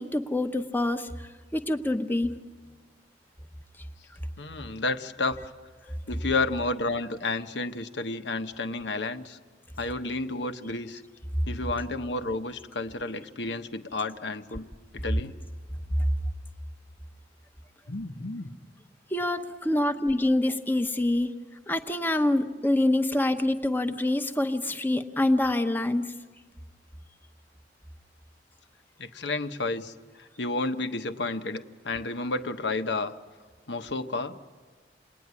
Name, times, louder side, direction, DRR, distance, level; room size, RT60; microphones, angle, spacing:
voice 1, 0.0-2.3 5.9-6.0 19.1-21.3 21.7-26.1, left 1 dB, 10° left, 8 dB, 1.0 m, -26 dB
voice 2, 4.4-5.4 6.1-9.4 9.8-11.0 11.4-14.7 14.9-15.3 17.9-18.5 29.0-33.1 33.7-34.4, left 3 dB, 75° left, 8 dB, 1.2 m, -31 dB
28.5 x 20.0 x 9.7 m, 1.5 s
head